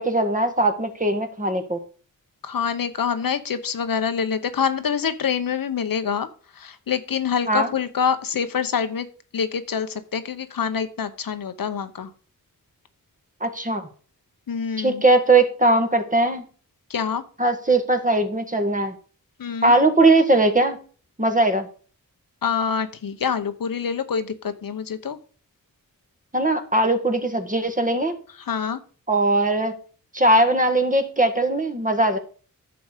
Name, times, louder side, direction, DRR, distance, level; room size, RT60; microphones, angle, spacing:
voice 1, 0.0-1.8 7.5-7.8 13.4-13.8 14.8-16.4 17.4-18.9 19.6-20.8 21.2-21.7 26.3-28.1 29.1-29.7 30.1-32.2, right 2 dB, 25° right, 6 dB, 1.8 m, -20 dB
voice 2, 2.4-6.3 6.6-9.1 9.3-12.1 14.5-15.0 16.9-17.2 19.4-19.7 22.4-25.2 28.5-28.8, left 7 dB, 85° left, 10 dB, 1.0 m, -26 dB
11.0 x 7.0 x 5.1 m, 0.41 s
wide cardioid pair, 75°, 33 cm